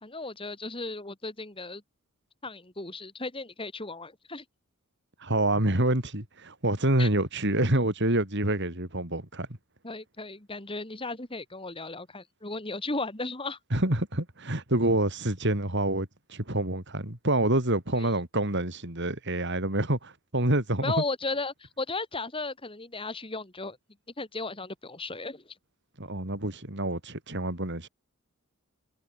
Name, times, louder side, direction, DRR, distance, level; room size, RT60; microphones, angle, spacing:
voice 1, 0.0-1.8 2.4-4.4 7.0-7.1 9.8-13.6 17.9-18.1 20.8-23.8 24.2-25.4, left 3 dB, 25° left, 3.5 m, -35 dB
voice 2, 5.2-9.5 13.7-20.9 26.0-27.9, right 1 dB, 55° right, 4.9 m, -27 dB
head